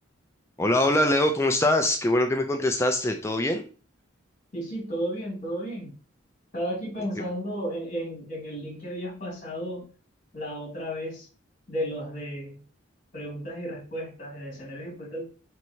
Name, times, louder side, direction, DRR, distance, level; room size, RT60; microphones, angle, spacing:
voice 1, 0.6-3.6, left 1 dB, 15° left, 5 dB, 0.4 m, -23 dB
voice 2, 4.5-5.9 6.5-9.9 10.3-11.3 11.7-12.6 13.1-15.2, equal, 40° left, -3 dB, 2.4 m, -33 dB
4.6 x 4.4 x 2.7 m, 0.36 s
head